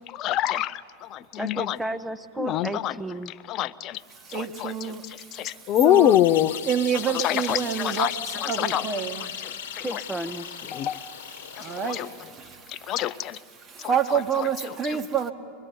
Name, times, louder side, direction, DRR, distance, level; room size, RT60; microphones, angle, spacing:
voice 1, 0.1-1.8 2.4-3.0 3.5-4.0 4.3-4.7 5.3-6.5 7.1-8.1 8.4-8.8 9.7-10.0 10.7-11.0 11.6-12.1 12.7-13.4 13.8-13.9 14.9-15.0, left 13 dB, 35° left, 13 dB, 0.5 m, -25 dB
voice 2, 1.4-3.4 9.8-10.7, right 1 dB, 5° right, 12 dB, 0.8 m, -33 dB
voice 3, 4.1-6.2 6.6-9.8 10.7-10.9 11.2-15.3, right 7 dB, 25° right, 9 dB, 1.3 m, -29 dB
sound 1, 5.9-12.3, left 9 dB, 60° left, 1.2 m, -37 dB
24.5 x 21.5 x 8.3 m, 2.2 s
figure-of-eight pair, 90°, 0 cm